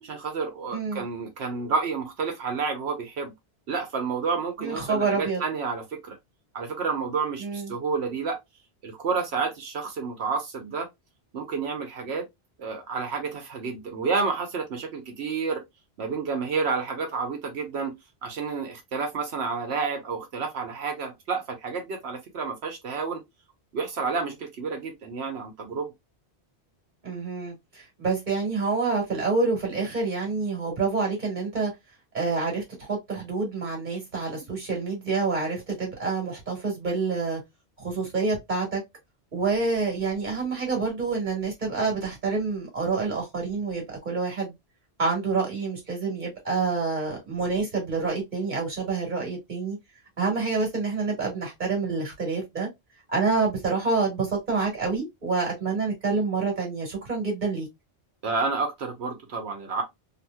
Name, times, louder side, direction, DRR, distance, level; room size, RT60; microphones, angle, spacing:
voice 1, 0.0-3.3 3.7-6.2 6.5-8.4 8.8-10.9 11.3-12.3 12.6-15.6 16.0-17.9 18.2-23.2 23.7-25.9 58.2-59.8, right 5 dB, 75° right, 1.0 m, -30 dB
voice 2, 0.7-1.0 4.6-5.4 7.4-7.7 27.0-31.7 32.1-37.4 37.8-38.8 39.3-44.5 45.0-49.8 50.2-52.7 53.1-57.7, right 4 dB, 45° right, 1.4 m, -27 dB
2.8 x 2.8 x 2.2 m
omnidirectional pair, 1.1 m